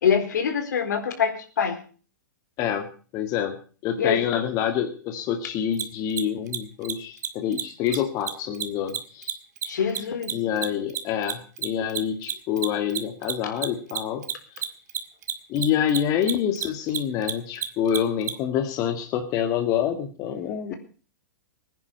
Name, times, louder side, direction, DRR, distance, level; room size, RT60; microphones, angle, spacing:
voice 1, 0.0-1.8 4.0-4.2 9.6-10.3, left 7 dB, 70° left, 6 dB, 4.2 m, -24 dB
voice 2, 3.1-3.6 3.8-9.4 10.3-14.6 15.5-20.7, left 9 dB, 35° left, 5 dB, 2.0 m, -27 dB
Mechanisms, 5.7-5.8 6.1-6.2 6.5-6.6 6.8-6.9 7.2-7.3 7.5-7.6 7.9-8.0 8.3-11.0 11.2-18.3, right 11 dB, 65° right, 2.1 m, -29 dB
20.0 x 10.0 x 5.5 m, 0.40 s
hypercardioid pair, 115°, 10 cm